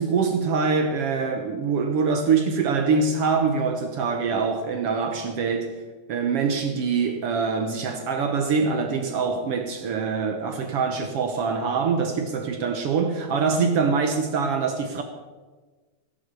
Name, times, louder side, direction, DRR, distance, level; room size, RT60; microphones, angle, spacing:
voice 1, 0.0-5.8 6.1-15.0, right 5 dB, 65° right, 1.6 m, -24 dB
16.0 x 8.2 x 6.8 m
omnidirectional pair, 3.5 m